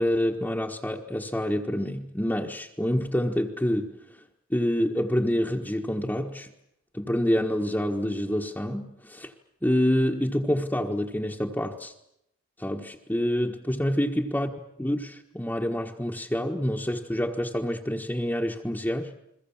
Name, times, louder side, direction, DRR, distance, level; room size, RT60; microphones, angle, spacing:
voice 1, 0.0-4.0 4.5-6.5 6.9-9.3 9.6-11.9 12.6-14.5 14.8-19.1, equal, 10° left, 1.5 m, -27 dB
30.0 x 22.5 x 7.3 m
head